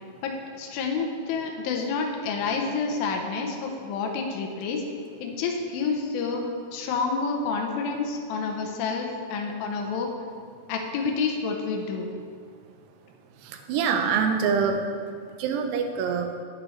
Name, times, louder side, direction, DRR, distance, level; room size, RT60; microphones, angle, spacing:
voice 1, 0.2-4.9 5.2-6.4 6.7-10.1 10.7-12.1, left 4 dB, 75° left, 2 dB, 2.3 m, -29 dB
voice 2, 13.4-14.8 15.4-16.3, right 6 dB, 90° right, 5 dB, 2.8 m, -25 dB
8.8 x 7.7 x 3.2 m, 2.1 s
omnidirectional pair, 4.7 m